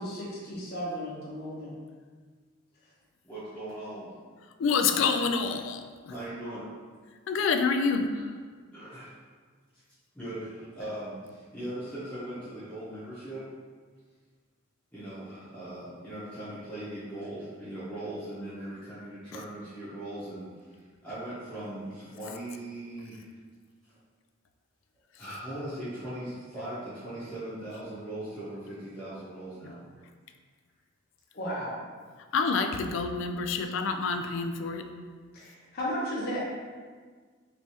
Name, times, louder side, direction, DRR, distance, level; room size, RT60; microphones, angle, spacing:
voice 1, 0.0-1.7 31.3-31.8 35.3-36.4, equal, 50° left, -5 dB, 0.7 m, -34 dB
voice 2, 3.2-4.1 6.1-6.6 8.1-8.2 8.7-9.1 10.1-13.4 14.9-20.7 21.0-23.2 25.2-29.8, right 1 dB, 5° left, -14 dB, 0.9 m, -39 dB
voice 3, 4.6-5.8 7.3-8.1 29.6-29.7 32.3-34.9, left 5 dB, 70° left, 6 dB, 0.3 m, -27 dB
3.2 x 3.2 x 2.9 m, 1.5 s
head